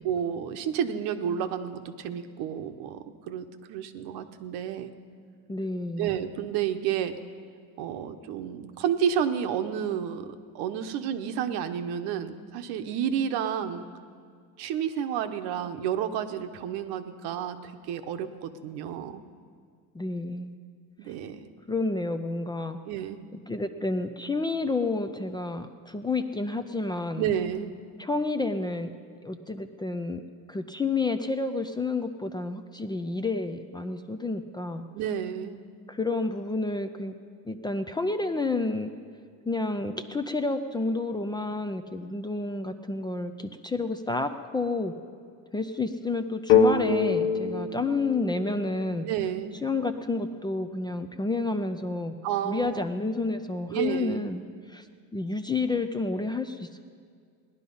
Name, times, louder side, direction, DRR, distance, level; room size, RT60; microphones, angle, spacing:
voice 1, 0.0-4.9 6.0-7.1 7.8-10.3 10.5-13.9 14.6-19.2 21.0-21.5 22.9-23.2 27.2-27.7 34.9-35.6 49.1-49.6 52.2-52.9 53.7-54.3, right 9 dB, 85° right, 8 dB, 1.0 m, -30 dB
voice 2, 5.5-6.1 19.9-20.5 21.7-22.8 23.5-27.3 28.0-28.9 29.2-30.2 30.5-34.8 35.9-37.1 37.4-38.9 39.5-44.9 45.5-49.1 49.6-52.1 52.4-54.4 54.7-54.9 55.1-56.9, left 3 dB, 15° left, 8 dB, 0.3 m, -30 dB
sound 1, 46.5-50.2, left 6 dB, 80° left, 1.2 m, -26 dB
17.5 x 11.0 x 5.4 m, 2.1 s
cardioid pair, 145°, 38 cm